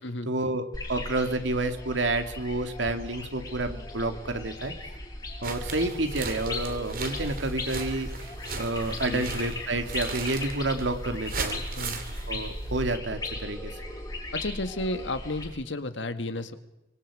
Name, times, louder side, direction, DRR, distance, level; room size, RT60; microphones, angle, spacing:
voice 1, 0.2-4.7 5.4-11.6 12.3-13.7, right 2 dB, 90° right, 7 dB, 2.4 m, -29 dB
sound 1, 0.7-15.5, left 2 dB, 20° left, 4.9 m, -38 dB
sound 2, 5.4-13.0, right 3 dB, 50° right, 2.9 m, -37 dB
voice 2, 14.3-16.6, left 2 dB, 90° left, 9 dB, 1.7 m, -32 dB
25.0 x 24.5 x 4.9 m, 0.96 s
head